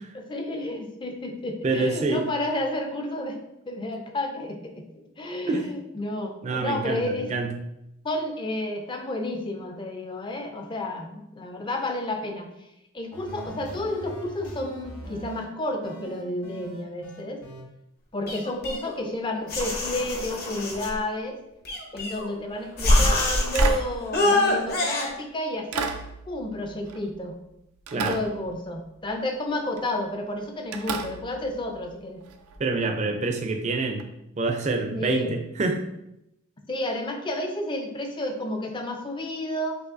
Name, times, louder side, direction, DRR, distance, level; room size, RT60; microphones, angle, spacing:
voice 1, 0.1-7.3 8.0-12.5 12.9-17.4 18.1-21.4 21.9-25.9 26.3-27.4 27.9-32.2 34.9-35.3 36.7-39.8, left 1 dB, 20° left, 3 dB, 0.4 m, -31 dB
voice 2, 1.6-2.2 5.5-5.7 6.4-7.5 27.9-28.2 32.6-34.1 34.4-35.8, right 3 dB, 30° right, 5 dB, 0.4 m, -26 dB
sound 1, 13.1-15.4 15.8-17.6, right 1 dB, 85° left, 1.0 m, -41 dB
sound 2, 18.3-19.1 19.5-20.9 21.7-22.4 22.8-23.8 24.1-25.1, left 1 dB, 45° left, 0.8 m, -24 dB
sound 3, 22.5-22.8 23.6-25.0 25.7-27.5 27.9-29.1 29.7-30.0 30.7-32.6 34.0-34.1, right 5 dB, 90° right, 0.4 m, -35 dB
6.2 x 2.7 x 2.6 m, 0.85 s
head